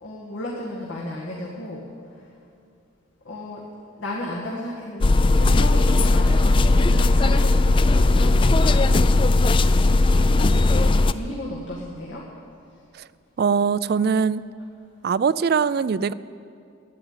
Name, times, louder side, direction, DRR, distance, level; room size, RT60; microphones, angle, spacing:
voice 1, 0.0-1.9 3.3-3.6 4.0-9.0 9.8-12.2, left 1 dB, 85° left, -4 dB, 2.0 m, -34 dB
sound 1, 5.0-11.1, left 2 dB, 25° left, 0.4 m, -17 dB
voice 2, 13.4-14.4 15.0-16.1, right 6 dB, 55° right, 18 dB, 0.4 m, -21 dB
12.5 x 9.3 x 9.6 m, 2.4 s
head